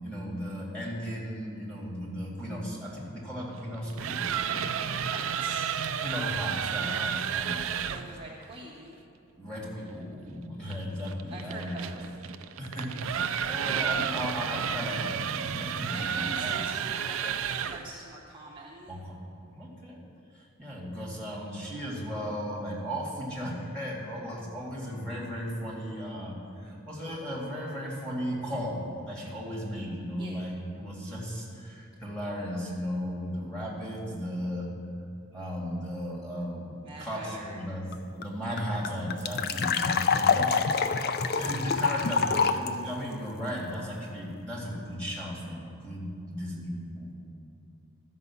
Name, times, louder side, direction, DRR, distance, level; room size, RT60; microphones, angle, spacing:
voice 1, 0.0-4.6 6.0-8.1 9.4-11.7 12.6-16.5 18.9-20.0 20.3-34.7 35.3-40.6 40.9-47.1, equal, 5° left, -5 dB, 2.2 m, -36 dB
sound 1, 3.8-8.1 10.7-17.9, right 8 dB, 65° right, 0.4 m, -31 dB
voice 2, 4.7-5.7 7.9-9.0 11.3-12.0 15.9-18.9 30.2-30.4 36.8-37.6, right 2 dB, 25° right, -5 dB, 0.9 m, -43 dB
sound 2, 37.9-38.0 38.2-38.3 38.6-42.7, left 5 dB, 45° left, 0.4 m, -26 dB
12.5 x 5.5 x 7.0 m, 2.6 s
head